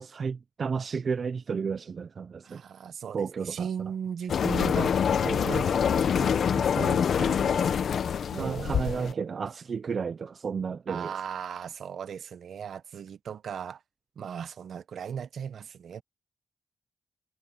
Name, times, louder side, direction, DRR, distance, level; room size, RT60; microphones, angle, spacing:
voice 1, 0.0-2.6 3.1-3.7 6.8-7.0 8.3-11.1, right 6 dB, 55° right, 0.5 m, -32 dB
voice 2, 2.4-4.9 5.2-7.7 8.3-9.2 10.9-13.8 14.2-16.0, right 7 dB, 75° right, 1.0 m, -37 dB
sound 1, 4.3-9.1, left 7 dB, 70° left, 0.9 m, -25 dB
cardioid pair, 90°, 0 cm